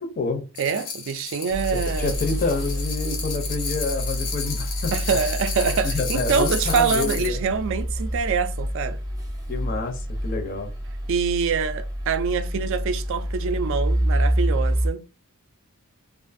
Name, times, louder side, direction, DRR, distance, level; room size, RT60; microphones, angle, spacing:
voice 1, 0.0-0.4 2.0-4.9 5.8-7.4 9.5-10.7, left 3 dB, 40° left, 0.5 m, -28 dB
sound 1, 0.5-7.3, left 5 dB, 90° left, 0.9 m, -33 dB
voice 2, 0.6-2.2 4.9-9.0 11.1-15.0, right 6 dB, 60° right, 0.3 m, -25 dB
sound 2, 1.5-14.9, equal, 15° right, 0.6 m, -27 dB
2.5 x 2.4 x 2.5 m
head